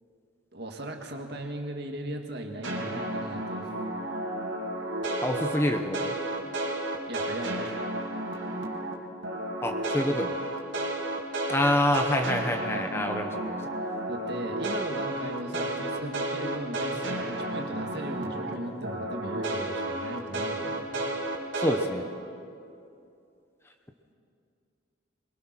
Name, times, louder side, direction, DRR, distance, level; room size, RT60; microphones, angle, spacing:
voice 1, 0.5-3.7 7.1-7.7 14.1-20.9, right 1 dB, 55° right, 3 dB, 2.1 m, -37 dB
sound 1, 2.6-8.9 9.2-18.5 18.8-21.8, right 1 dB, 70° right, 2.7 m, -32 dB
voice 2, 5.2-6.1 9.6-10.4 11.5-13.6 21.6-22.0, left 1 dB, 10° left, 5 dB, 1.0 m, -27 dB
22.5 x 21.5 x 6.2 m, 2.6 s
head